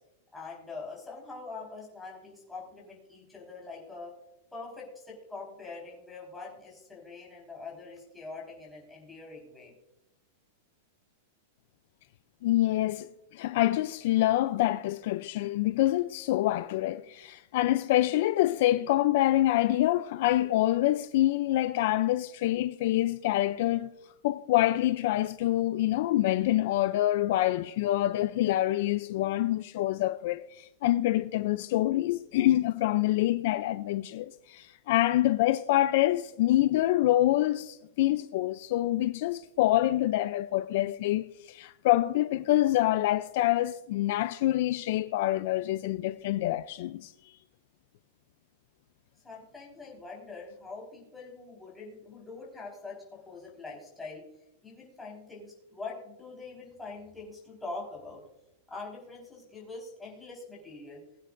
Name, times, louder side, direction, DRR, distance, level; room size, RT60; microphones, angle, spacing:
voice 1, 0.3-4.1 4.5-9.7 49.2-54.3 54.6-58.2 58.7-61.0, left 3 dB, 5° left, 4.3 m, -43 dB
voice 2, 12.4-23.9 24.2-47.1, left 15 dB, 50° left, 0.4 m, -26 dB
21.0 x 9.0 x 2.6 m
supercardioid pair, 170°, 0 cm